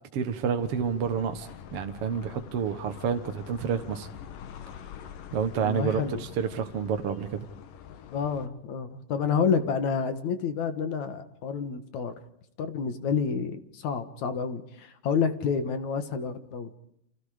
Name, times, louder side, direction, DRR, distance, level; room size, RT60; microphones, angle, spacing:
voice 1, 0.1-4.1 5.3-7.4, right 7 dB, 55° right, 6 dB, 2.0 m, -29 dB
sound 1, 0.6-8.5, left 8 dB, 85° left, 3.1 m, -45 dB
voice 2, 5.5-6.2 8.1-12.1 12.6-16.8, left 6 dB, 65° left, 10 dB, 2.8 m, -29 dB
29.5 x 27.0 x 5.0 m, 0.74 s
omnidirectional pair, 3.7 m